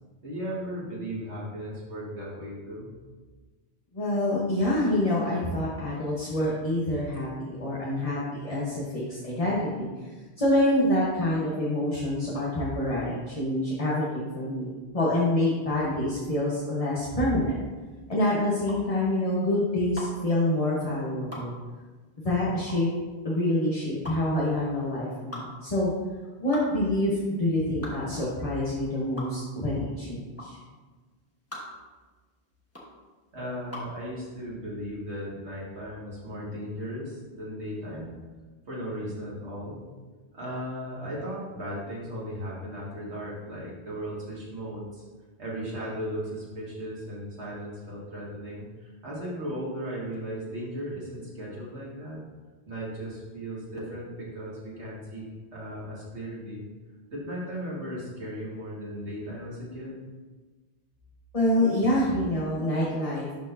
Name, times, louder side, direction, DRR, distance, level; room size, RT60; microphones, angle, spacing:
voice 1, 0.2-2.9 33.3-38.2 38.7-39.8 40.3-45.0 45.4-52.3 52.7-55.3 55.5-56.7 57.1-60.0, equal, 85° right, -7 dB, 2.2 m, -36 dB
voice 2, 3.9-9.9 10.4-17.5 18.1-21.5 22.2-22.9 23.2-25.9 26.4-30.6 61.3-63.3, left 1 dB, 35° left, -6 dB, 1.2 m, -26 dB
sound 1, 16.8-34.0, left 1 dB, 15° left, 1.2 m, -43 dB
11.5 x 4.5 x 2.7 m, 1.4 s
omnidirectional pair, 1.1 m